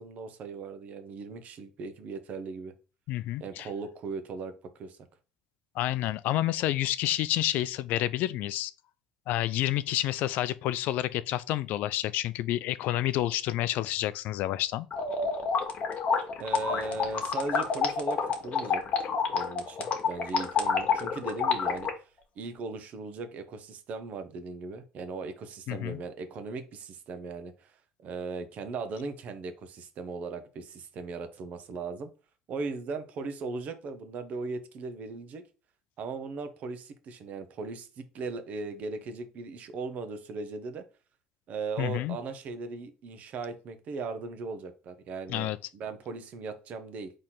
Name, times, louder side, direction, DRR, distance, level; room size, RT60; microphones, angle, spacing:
voice 1, 0.0-2.7 3.4-4.5 4.8-5.0 16.4-18.8 19.3-21.9 22.4-27.7 28.0-32.1 32.5-35.4 36.0-40.8 41.5-47.1, right 4 dB, 55° right, 0.9 m, -38 dB
voice 2, 3.1-3.7 5.8-8.7 9.3-14.9 25.7-26.0 41.8-42.2 45.3-45.6, left 14 dB, 65° left, 0.3 m, -29 dB
sound 1, 14.9-21.9, left 5 dB, 45° left, 1.3 m, -28 dB
4.2 x 3.2 x 3.8 m
supercardioid pair, 85°, 3 cm